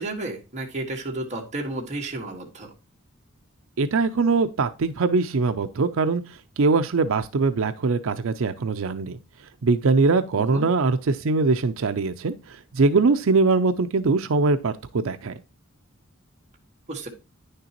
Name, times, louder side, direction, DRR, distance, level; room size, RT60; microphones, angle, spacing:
voice 1, 0.0-2.7 10.4-10.7 16.9-17.1, right 2 dB, 35° right, 1.6 m, -32 dB
voice 2, 3.8-9.2 9.6-15.3, right 4 dB, 65° right, 0.5 m, -22 dB
9.9 x 6.6 x 2.9 m
head